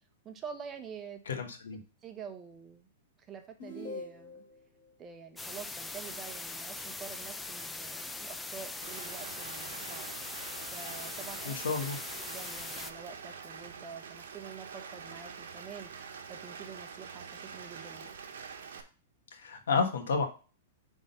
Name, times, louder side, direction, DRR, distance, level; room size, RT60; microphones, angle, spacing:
voice 1, 0.2-1.4 2.0-2.9 3.3-4.4 5.0-10.1 10.7-11.6 12.3-15.9 16.3-18.1, right 6 dB, 25° right, 6 dB, 0.9 m, -47 dB
voice 2, 1.3-1.8 11.4-12.0 19.3-20.3, left 4 dB, 85° left, 6 dB, 1.2 m, -31 dB
sound 1, 3.6-4.6, left 3 dB, 65° left, 2.2 m, -43 dB
sound 2, 5.4-12.9, left 2 dB, 10° left, 0.4 m, -41 dB
Rain, 8.8-18.8, right 6 dB, 80° right, 1.0 m, -46 dB
5.4 x 3.7 x 5.4 m, 0.35 s
hypercardioid pair, 130°, 0 cm